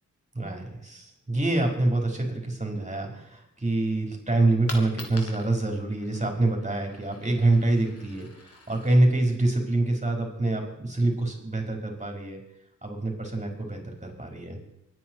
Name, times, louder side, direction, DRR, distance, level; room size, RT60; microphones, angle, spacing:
voice 1, 0.3-12.4 12.8-14.7, right 2 dB, 25° right, 1 dB, 5.3 m, -26 dB
Coin (dropping), 4.6-10.3, left 2 dB, 50° left, 3.3 m, -46 dB
24.0 x 9.7 x 4.9 m, 0.86 s
cardioid pair, 60°, 30 cm